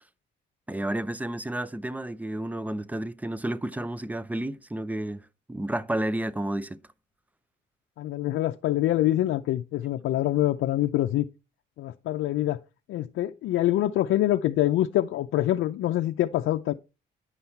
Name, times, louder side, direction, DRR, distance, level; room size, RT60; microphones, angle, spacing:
voice 1, 0.7-6.8, right 1 dB, 10° right, 0.5 m, -31 dB
voice 2, 8.0-11.3 11.8-12.6 12.9-16.7, left 14 dB, 80° left, 0.5 m, -25 dB
9.8 x 5.6 x 4.4 m
cardioid pair, 90°, 20 cm